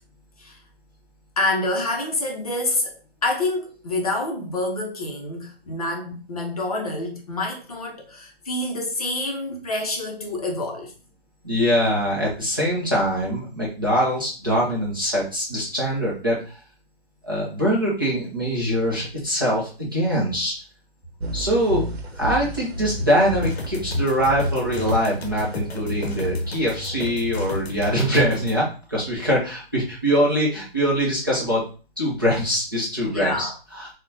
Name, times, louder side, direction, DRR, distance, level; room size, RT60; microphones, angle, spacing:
voice 1, 1.4-2.9 3.2-10.9 33.0-33.5, left 2 dB, 35° left, 0.6 m, -27 dB
voice 2, 11.4-16.6 17.2-20.5 21.3-21.9 22.2-31.6 32.0-33.9, equal, 20° right, 0.4 m, -23 dB
sound 1, 21.2-28.6, equal, 80° right, 0.8 m, -31 dB
sound 2, 23.4-28.5, left 2 dB, 80° left, 0.7 m, -34 dB
3.7 x 2.1 x 2.5 m
hypercardioid pair, 165°, 31 cm